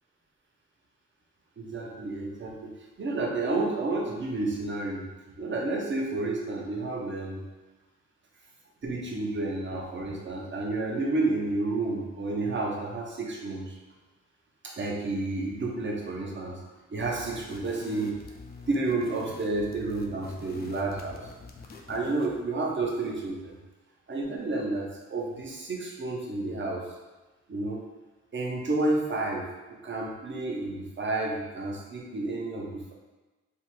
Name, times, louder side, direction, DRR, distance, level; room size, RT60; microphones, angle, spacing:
voice 1, 1.6-5.1 5.4-7.4 8.8-13.7 14.6-16.6 16.9-18.2 18.7-21.3 21.9-23.5 24.1-26.8 27.5-27.9 28.3-29.4 29.7-32.9, right 2 dB, 40° right, -1 dB, 0.7 m, -30 dB
sound 1, 17.0-22.4, left 4 dB, 30° left, 0.4 m, -46 dB
3.4 x 2.0 x 3.0 m, 1.2 s
cardioid pair, 85°, 31 cm